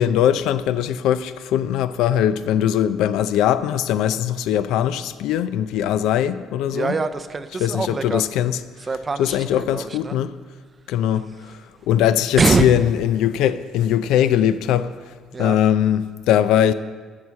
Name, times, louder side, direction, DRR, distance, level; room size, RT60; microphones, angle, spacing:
voice 1, 0.0-6.9 7.6-8.6 9.2-10.3 10.9-11.2 11.9-14.9 15.4-16.7, left 10 dB, 85° left, 0.4 m, -20 dB
voice 2, 6.7-8.2 8.8-10.2 11.4-11.5 12.4-12.7 15.3-15.6, right 4 dB, 20° right, 0.5 m, -23 dB
14.0 x 4.7 x 7.5 m
cardioid pair, 160°, 0 cm